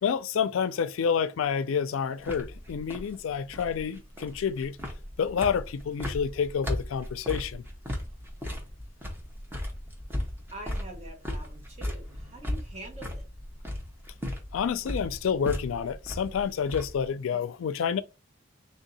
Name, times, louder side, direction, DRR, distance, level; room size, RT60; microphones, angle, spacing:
voice 1, 0.0-4.8 5.2-7.6 14.5-18.0, left 7 dB, 85° left, 0.4 m, -28 dB
sound 1, 2.2-17.1, left 1 dB, 10° right, 0.8 m, -37 dB
voice 2, 10.5-13.3, right 1 dB, 35° right, 1.2 m, -44 dB
3.5 x 2.7 x 3.9 m
head